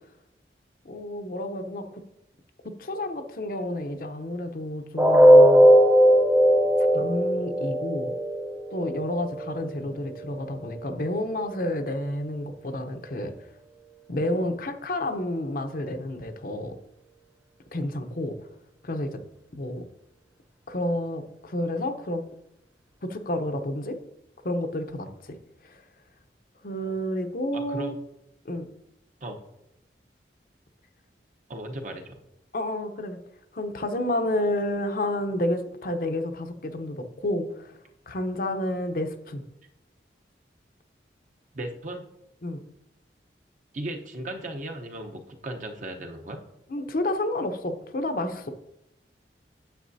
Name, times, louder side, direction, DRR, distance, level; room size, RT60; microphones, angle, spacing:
voice 1, 0.8-1.8 2.8-5.7 6.9-8.2 8.7-13.3 14.1-16.8 17.7-18.4 18.8-19.2 19.5-19.8 20.7-22.2 23.0-23.9 24.4-25.3 25.6-25.8 26.6-27.9 28.4-28.6 32.5-33.2 33.5-37.8 38.1-39.4 42.4-42.6 46.7-48.5, left 1 dB, 55° left, 6 dB, 0.7 m, -30 dB
sound 1, 5.0-10.9 11.3-11.5 12.0-12.1, equal, 15° right, 0.8 m, -19 dB
voice 2, 27.5-28.0 29.2-29.4 31.5-32.2 41.5-42.1 43.7-46.4, right 1 dB, 45° right, 4 dB, 0.8 m, -36 dB
9.3 x 7.4 x 2.7 m, 0.83 s
head